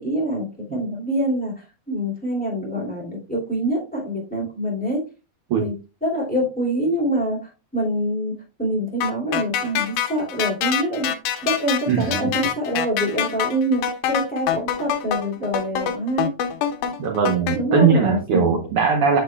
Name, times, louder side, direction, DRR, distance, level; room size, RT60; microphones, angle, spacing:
voice 1, 0.0-5.0 5.6-5.7 6.0-11.1 11.4-16.3 17.5-18.6, equal, 5° left, -3 dB, 2.2 m, -25 dB
sound 1, 9.0-17.6, left 9 dB, 85° left, 2.2 m, -25 dB
voice 2, 11.9-12.3 17.0-19.2, right 6 dB, 70° right, 3 dB, 1.4 m, -20 dB
7.8 x 6.0 x 2.2 m, 0.31 s
omnidirectional pair, 3.6 m